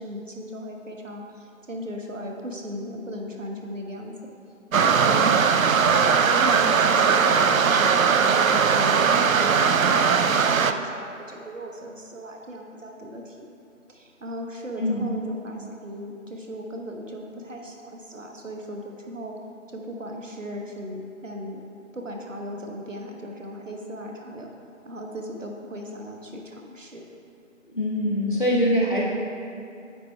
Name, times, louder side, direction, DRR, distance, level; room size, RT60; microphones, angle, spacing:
voice 1, 0.0-4.1 4.8-5.3 6.2-13.5 13.9-19.3 19.7-21.6 21.9-27.0, equal, 70° right, 2 dB, 1.1 m, -37 dB
sound 1, 4.7-10.7, right 6 dB, 85° right, 0.5 m, -19 dB
voice 2, 27.7-29.0, equal, 40° left, -4 dB, 1.1 m, -23 dB
9.1 x 7.6 x 2.3 m, 2.5 s
figure-of-eight pair, 165°, 40 cm